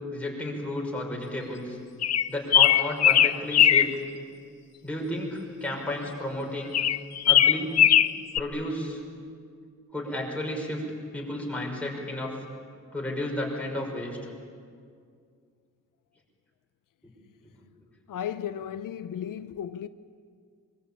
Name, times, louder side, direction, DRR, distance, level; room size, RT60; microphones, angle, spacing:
voice 1, 0.1-1.8 2.3-3.9 4.8-6.8 7.3-7.8 8.3-9.0 9.9-10.8 11.1-12.3 12.9-14.3 17.0-17.1, left 1 dB, 5° left, 6.0 m, -32 dB
sound 1, 2.0-3.9 6.7-8.4, left 10 dB, 55° left, 0.7 m, -19 dB
voice 2, 18.1-19.9, left 9 dB, 85° left, 0.8 m, -34 dB
24.5 x 24.0 x 8.7 m
wide cardioid pair, 170°, 31 cm